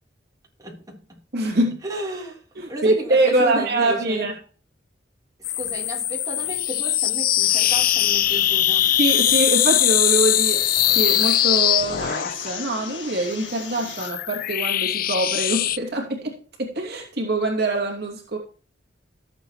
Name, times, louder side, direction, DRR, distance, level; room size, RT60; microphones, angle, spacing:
voice 1, 0.6-1.2 1.8-4.3 5.6-9.0, right 1 dB, 20° right, 3.8 m, -33 dB
voice 2, 1.3-1.8 2.6-4.3 9.0-10.6 10.9-18.4, right 2 dB, 60° right, 2.7 m, -24 dB
sound 1, 5.4-12.7 13.6-15.8, left 12 dB, 50° left, 0.4 m, -21 dB
sound 2, 7.4-14.1, left 5 dB, 75° left, 2.2 m, -38 dB
15.5 x 7.8 x 3.1 m
head